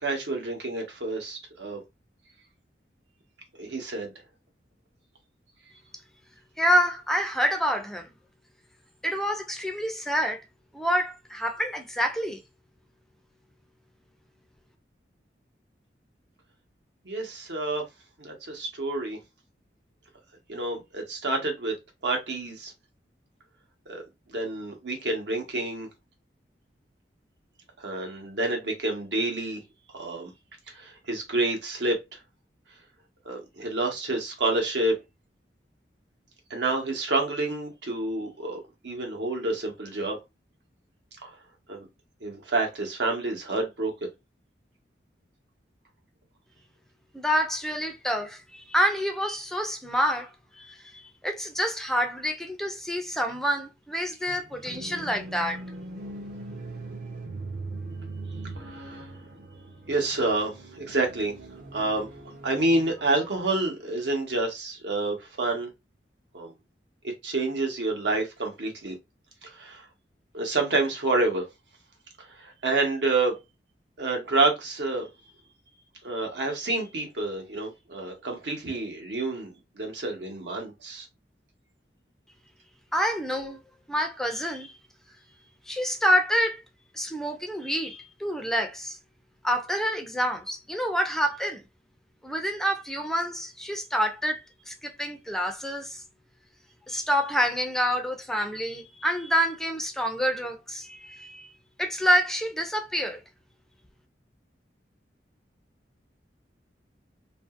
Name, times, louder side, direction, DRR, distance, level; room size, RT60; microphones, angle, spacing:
voice 1, 0.0-1.8 3.6-4.1 17.0-17.8 18.2-19.2 20.5-21.7 22.0-22.7 23.9-24.0 24.3-25.9 27.8-29.6 29.9-30.3 30.7-32.2 33.2-34.9 36.5-40.2 41.2-41.3 41.7-41.8 42.2-43.9 58.7-59.0 59.9-61.3 61.7-62.1 62.4-65.7 66.3-66.5 67.2-68.9 69.4-69.8 70.3-71.5 72.2-73.4 74.0-75.1 76.0-81.1, right 2 dB, 80° right, 1.0 m, -28 dB
voice 2, 6.6-8.1 9.0-10.4 10.7-12.4 47.1-55.6 82.9-83.6 83.9-84.7 85.7-86.6 86.9-89.0 89.4-91.6 92.2-96.0 96.9-101.5 101.8-103.2, equal, 5° left, 0.3 m, -27 dB
sound 1, 54.3-63.6, right 2 dB, 50° right, 0.6 m, -41 dB
2.7 x 2.6 x 2.4 m
head